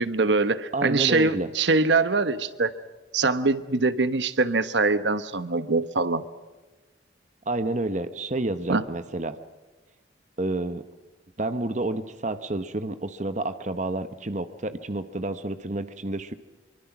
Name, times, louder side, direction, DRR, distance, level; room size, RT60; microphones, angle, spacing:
voice 1, 0.0-2.7 3.1-6.2 8.7-8.8, right 3 dB, 75° right, 13 dB, 1.1 m, -23 dB
voice 2, 0.7-1.5 7.5-9.4 10.4-10.8 11.4-16.3, right 2 dB, 40° right, 10 dB, 1.0 m, -29 dB
24.5 x 24.0 x 6.0 m, 1.2 s
head